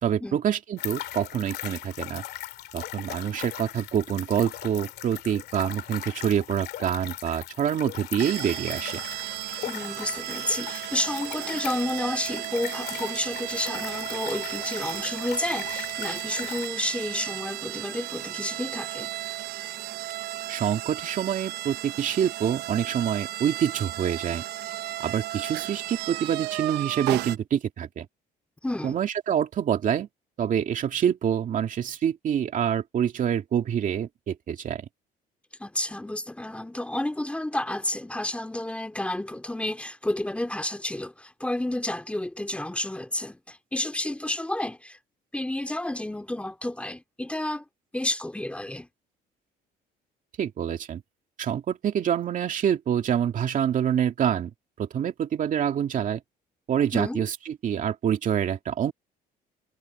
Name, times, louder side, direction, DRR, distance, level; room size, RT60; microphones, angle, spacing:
voice 1, 0.0-2.2 2.7-9.0 20.5-24.4 25.0-28.1 28.8-30.1 30.4-34.9 50.4-51.0 51.4-54.5 54.8-56.2 56.7-58.9, right 9 dB, 50° right, 2.4 m, -26 dB
sound 1, 0.8-16.7, left 14 dB, 75° left, 2.2 m, -39 dB
sound 2, 8.2-27.4, right 16 dB, 85° right, 0.9 m, -34 dB
voice 2, 9.7-19.1 28.6-29.0 35.6-45.0 45.3-47.6 47.9-48.9 56.9-57.3, left 1 dB, 5° left, 2.3 m, -31 dB
cardioid pair, 110°, 17 cm